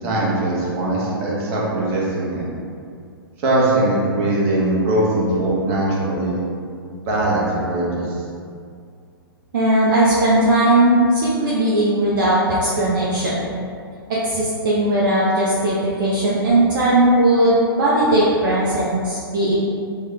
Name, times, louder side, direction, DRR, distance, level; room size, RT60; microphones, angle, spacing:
voice 1, 0.0-2.5 3.4-6.3 7.1-8.2, right 1 dB, 35° right, -6 dB, 1.0 m, -21 dB
voice 2, 9.5-13.3 14.1-19.6, right 1 dB, 55° right, -7 dB, 0.6 m, -18 dB
3.0 x 2.2 x 3.8 m, 2.3 s
figure-of-eight pair, 120°, 13 cm